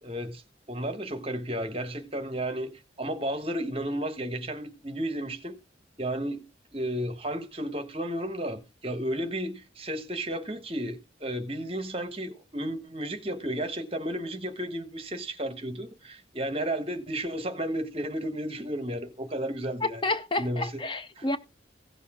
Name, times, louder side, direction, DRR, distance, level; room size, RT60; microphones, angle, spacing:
voice 1, 0.0-0.4 0.7-2.7 3.0-5.6 6.0-6.4 6.7-20.0 20.4-20.8 21.2-21.3, right 1 dB, 30° right, 1.3 m, -33 dB
voice 2, 19.8-21.4, left 2 dB, 25° left, 0.6 m, -30 dB
16.5 x 6.9 x 3.6 m
head